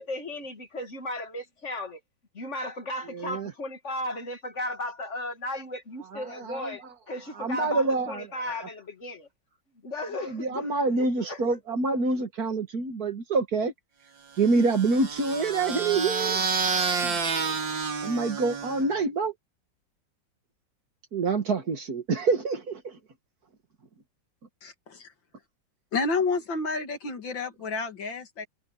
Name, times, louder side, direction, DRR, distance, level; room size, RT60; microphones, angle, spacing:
voice 1, 0.0-2.0 2.3-9.3 9.8-11.6, left 1 dB, 40° left, 2.4 m, -35 dB
voice 2, 3.1-3.5 6.1-6.8 7.4-8.3 10.2-13.7 14.4-16.4 16.7-17.2 18.0-19.3 21.1-22.9, right 3 dB, 50° right, 2.1 m, -27 dB
sound 1, 14.4-19.0, right 5 dB, 75° right, 3.2 m, -29 dB
voice 3, 25.9-28.5, left 4 dB, 75° left, 3.0 m, -29 dB
omnidirectional pair, 2.1 m